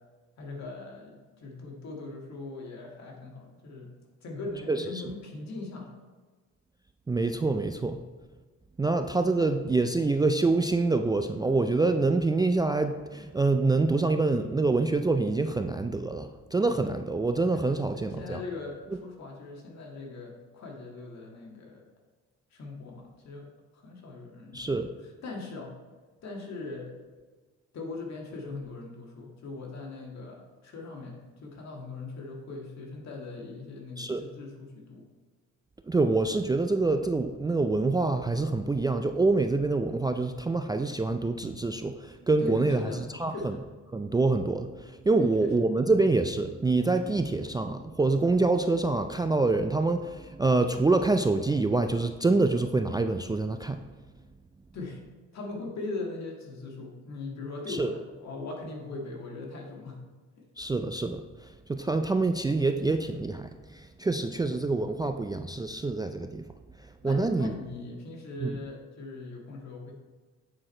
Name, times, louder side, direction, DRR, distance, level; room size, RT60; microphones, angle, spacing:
voice 1, 0.4-3.9 4.2-5.9 17.5-21.8 22.5-23.5 23.7-24.8 25.2-25.7 26.2-27.0 27.7-35.0 42.4-43.6 45.2-45.5 54.7-55.0 55.3-60.0 64.4-64.5 67.0-69.9, left 3 dB, 60° left, -1 dB, 1.9 m, -40 dB
voice 2, 4.7-5.0 7.1-8.0 8.8-18.4 24.5-24.9 34.0-34.2 35.9-42.8 43.1-43.5 43.9-53.8 57.7-57.9 60.6-66.5 67.0-67.5 68.4-68.6, right 3 dB, 15° right, 7 dB, 0.3 m, -26 dB
8.6 x 4.8 x 4.3 m, 1.4 s
cardioid pair, 90°, 30 cm